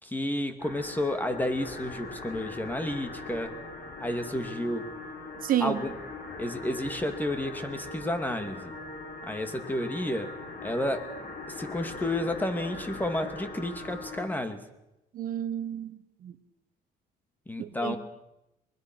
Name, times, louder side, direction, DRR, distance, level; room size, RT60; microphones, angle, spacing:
voice 1, 0.0-3.5 4.0-4.9 5.6-5.9 6.4-8.8 9.2-10.4 10.6-11.1 11.5-14.6 17.5-18.0, left 1 dB, 10° left, 8 dB, 2.5 m, -31 dB
sound 1, 0.6-14.3, left 3 dB, 60° left, 5.3 m, -41 dB
voice 2, 5.4-5.8 15.1-16.4 17.6-18.0, right 11 dB, 55° right, 10 dB, 1.4 m, -31 dB
24.0 x 20.5 x 6.3 m, 0.90 s
cardioid pair, 110°, 17 cm